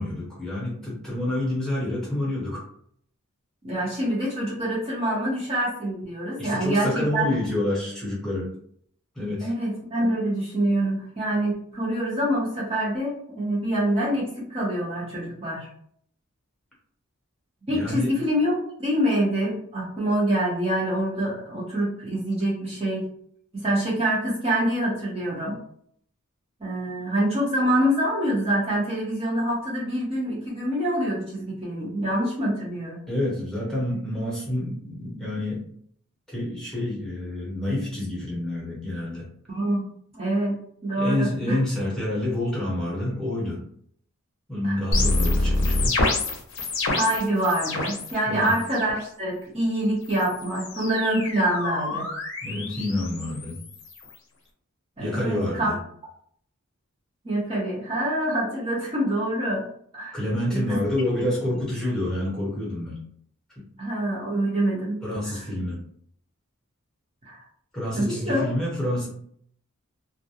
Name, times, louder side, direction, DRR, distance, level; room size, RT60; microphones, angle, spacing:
voice 1, 0.0-2.6 6.4-8.5 9.2-9.5 17.7-18.1 33.1-35.6 36.3-39.3 41.0-43.6 44.5-45.9 48.3-48.5 52.4-53.6 55.0-55.8 60.1-63.0 63.6-63.7 65.0-65.8 67.7-69.1, left 1 dB, 5° left, -6 dB, 1.0 m, -28 dB
voice 2, 3.6-7.3 9.4-15.7 17.7-23.1 23.5-25.6 26.6-33.0 39.5-41.6 44.6-44.8 46.9-52.1 55.0-55.7 57.2-59.6 59.9-60.2 60.5-60.8 63.8-65.0 65.2-65.4 67.2-67.4 67.9-68.4, right 1 dB, 30° right, -7 dB, 0.7 m, -26 dB
sound 1, 44.9-48.1 48.4-49.0 50.0-54.2, left 2 dB, 60° left, 0.6 m, -27 dB
2.3 x 2.1 x 2.8 m, 0.63 s
head